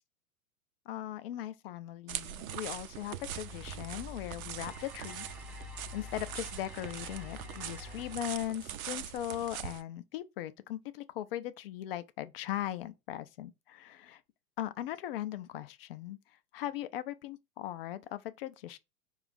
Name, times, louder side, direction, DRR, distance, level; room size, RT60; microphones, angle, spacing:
voice 1, 0.9-5.3 5.9-14.2 14.6-16.2 16.5-18.8, left 12 dB, 40° left, 0.4 m, -39 dB
sound 1, 2.1-9.8, right 11 dB, 65° right, 0.5 m, -42 dB
sound 2, 3.2-8.2, left 3 dB, 5° right, 0.6 m, -47 dB
4.7 x 2.4 x 3.9 m
figure-of-eight pair, 105°, 46 cm